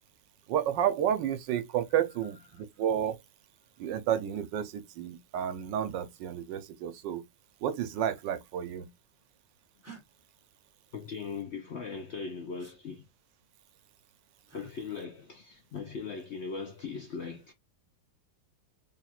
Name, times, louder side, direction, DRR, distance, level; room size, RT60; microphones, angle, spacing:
voice 1, 0.5-3.2 3.8-7.2 7.6-8.9, right 10 dB, 85° right, 1.4 m, -31 dB
sound 1, 9.8-10.0 12.6-12.8 14.5-14.7 16.5-16.9, right 4 dB, 10° right, 1.1 m, -50 dB
voice 2, 10.9-13.1 14.5-17.5, left 5 dB, 60° left, 0.7 m, -39 dB
3.8 x 2.3 x 4.2 m
omnidirectional pair, 1.9 m